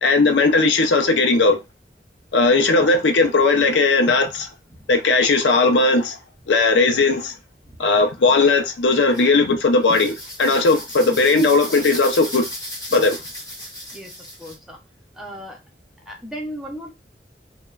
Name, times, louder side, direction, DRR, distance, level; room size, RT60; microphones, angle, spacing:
voice 1, 0.0-1.6 2.3-4.5 4.9-6.2 6.5-7.3 7.8-12.4 12.9-13.2, left 3 dB, 90° left, 0.5 m, -17 dB
sound 1, 9.1-9.2 9.8-14.6, equal, 20° left, 1.1 m, -35 dB
voice 2, 14.4-14.8 15.2-15.6 16.1-16.9, equal, ahead, 0.5 m, -35 dB
2.9 x 2.1 x 2.3 m
head